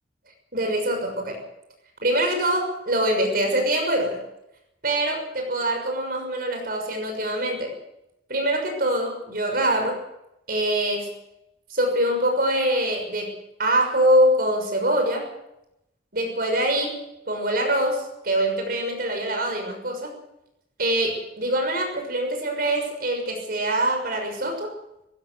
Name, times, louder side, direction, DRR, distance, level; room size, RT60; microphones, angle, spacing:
voice 1, 0.5-1.4 2.0-4.2 4.8-7.7 8.3-10.0 10.5-11.1 11.7-13.3 13.6-15.3 16.1-17.0 17.3-20.1 20.8-24.7, right 1 dB, 55° right, 4 dB, 6.3 m, -24 dB
19.5 x 17.0 x 8.0 m, 0.84 s
head